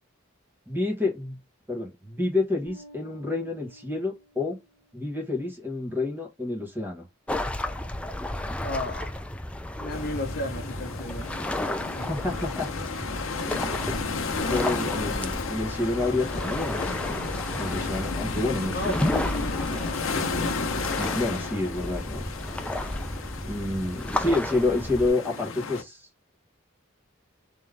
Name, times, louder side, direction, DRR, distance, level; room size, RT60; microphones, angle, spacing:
voice 1, 0.7-1.4 1.7-4.6 4.9-7.0 11.9-12.7 13.4-17.3 17.6-19.0 20.9-22.2 23.5-26.1, left 2 dB, 10° right, 1.4 m, -29 dB
Bass guitar, 2.7-5.1, equal, 35° left, 1.3 m, -51 dB
sound 1, 7.3-25.1, left 1 dB, 5° left, 0.4 m, -32 dB
voice 2, 8.6-9.1 9.8-11.3 14.7-14.9 18.7-19.9, left 1 dB, 50° left, 0.9 m, -34 dB
sound 2, 9.9-25.8, left 4 dB, 85° left, 0.8 m, -33 dB
3.7 x 3.1 x 3.4 m
head